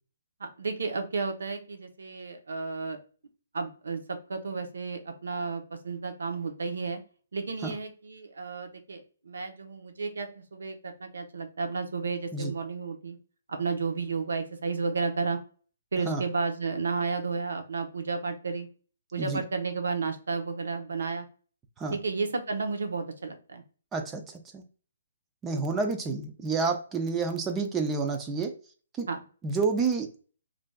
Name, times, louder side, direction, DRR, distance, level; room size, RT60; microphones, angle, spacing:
voice 1, 0.4-3.0 3.5-7.0 7.3-13.2 13.5-15.4 15.9-18.7 19.1-21.3 21.9-23.6 29.1-29.2, right 4 dB, 85° right, 6 dB, 0.6 m, -32 dB
voice 2, 23.9-24.2 24.5-24.6 25.4-28.5 29.0-29.1 29.4-30.1, right 4 dB, 10° right, 6 dB, 0.3 m, -29 dB
3.3 x 2.5 x 2.2 m, 0.40 s
hypercardioid pair, 165°, 0 cm